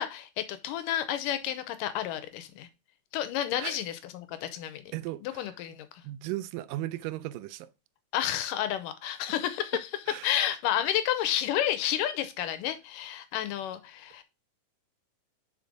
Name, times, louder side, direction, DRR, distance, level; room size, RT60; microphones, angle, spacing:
voice 1, 0.0-2.7 3.1-4.9 5.2-6.0 8.1-9.9 10.2-14.2, left 11 dB, 85° left, 2.3 m, -31 dB
voice 2, 4.9-5.5 6.0-7.7 10.1-10.3, right 16 dB, 85° right, 2.3 m, -36 dB
5.3 x 5.3 x 4.9 m
omnidirectional pair, 3.9 m